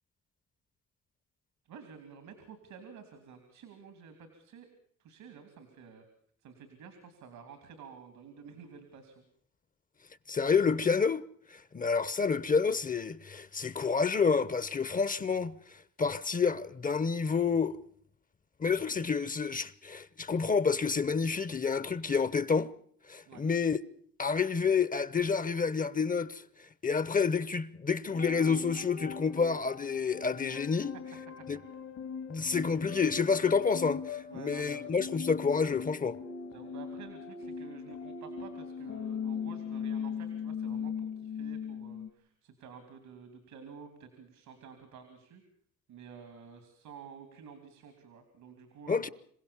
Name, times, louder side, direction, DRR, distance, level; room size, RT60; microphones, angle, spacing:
voice 1, 1.6-4.7 5.0-6.0 6.4-9.2 23.3-23.4 34.3-35.0 36.5-45.4 45.9-49.1, right 6 dB, 85° right, 3.1 m, -51 dB
voice 2, 10.3-11.2 11.5-17.8 18.6-22.7 23.1-23.8 24.2-30.9 31.5-31.6 32.3-36.2 48.9-49.1, left 5 dB, 25° left, 0.9 m, -29 dB
sound 1, 28.1-42.1, left 7 dB, 65° left, 2.0 m, -39 dB
27.0 x 16.0 x 7.1 m
cardioid pair, 90°, 30 cm